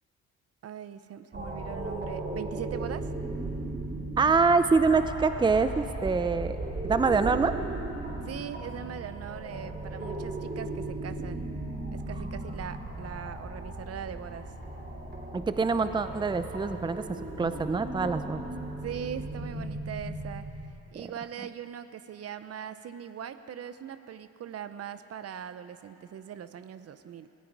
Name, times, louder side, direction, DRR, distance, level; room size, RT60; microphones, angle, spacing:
voice 1, 0.6-3.1 8.2-11.4 11.9-14.5 18.8-20.4 20.9-27.3, right 9 dB, 55° right, 12 dB, 0.7 m, -40 dB
sound 1, 1.3-20.7, right 2 dB, 35° right, 2.9 m, -37 dB
voice 2, 4.2-6.6 6.8-7.5 15.3-17.0 17.4-18.4, right 4 dB, 15° right, 10 dB, 0.6 m, -25 dB
sound 2, 15.7-17.8, equal, 40° left, 2.6 m, -52 dB
18.0 x 17.0 x 4.8 m, 2.9 s
cardioid pair, 90°, 30 cm